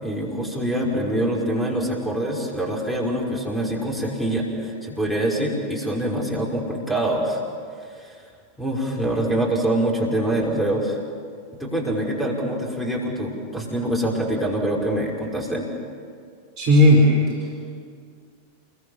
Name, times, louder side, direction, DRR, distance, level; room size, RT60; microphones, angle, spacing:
voice 1, 0.0-7.4 8.0-8.2 8.6-11.0 11.6-15.6, right 1 dB, 5° left, -1 dB, 5.7 m, -25 dB
voice 2, 16.6-17.6, left 1 dB, 40° right, -2 dB, 4.8 m, -16 dB
28.5 x 22.5 x 7.4 m, 2.2 s
figure-of-eight pair, 90°, 0 cm